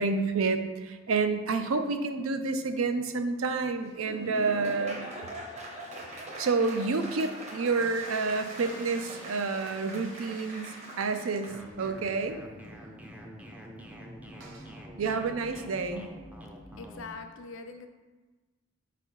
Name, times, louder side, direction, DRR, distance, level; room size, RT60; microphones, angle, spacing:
voice 1, 0.0-5.0 6.4-12.4 15.0-16.1, right 4 dB, 80° right, 8 dB, 0.5 m, -29 dB
Laughter / Applause, 3.8-11.7, right 1 dB, 30° right, 0.8 m, -42 dB
sound 1, 7.8-12.0 12.3-12.4 12.6-12.7 14.4-14.8, right 2 dB, 65° right, 0.9 m, -50 dB
sound 2, 11.5-17.1, equal, 5° right, 0.4 m, -46 dB
voice 2, 16.8-17.9, left 4 dB, 70° left, 6 dB, 0.6 m, -43 dB
5.6 x 4.0 x 4.6 m, 1.2 s
head